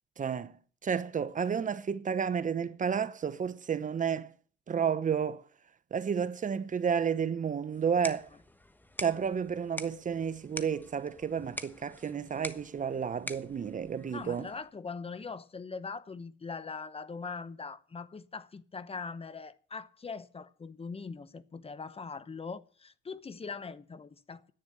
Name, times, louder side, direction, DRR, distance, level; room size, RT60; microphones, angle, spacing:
voice 1, 0.2-0.6 0.8-4.3 4.7-5.4 5.9-8.3 9.0-14.5, right 7 dB, 40° right, 1.0 m, -31 dB
sound 1, 7.7-14.7, left 1 dB, 10° left, 1.2 m, -45 dB
voice 2, 14.1-24.5, left 4 dB, 30° left, 1.0 m, -41 dB
10.5 x 9.3 x 9.4 m
cardioid pair, 90°, 20 cm